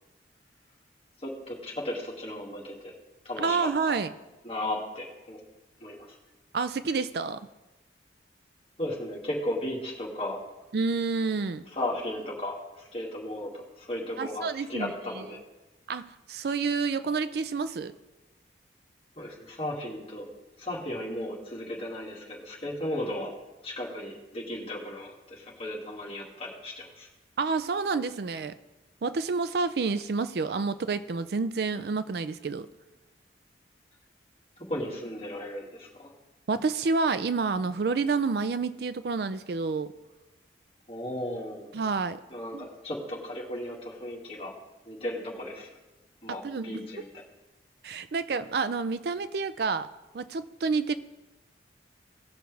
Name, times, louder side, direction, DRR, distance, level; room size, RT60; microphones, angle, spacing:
voice 1, 1.2-2.9 3.2-4.0 4.4-5.4 5.8-6.1 8.8-10.4 11.7-15.4 19.2-20.3 20.6-23.3 23.6-27.1 34.7-36.1 40.9-41.7 42.3-44.5 44.9-45.7 46.2-47.1, left 1 dB, 30° left, -3 dB, 2.3 m, -35 dB
voice 2, 3.4-4.1 6.5-7.4 10.7-11.6 14.2-15.2 15.9-17.9 27.4-28.5 29.0-32.7 36.5-39.9 41.7-42.2 42.5-42.7 46.4-46.8 47.8-49.9 50.1-51.0, right 4 dB, 55° right, 13 dB, 0.4 m, -29 dB
18.0 x 6.3 x 3.4 m, 1.1 s
head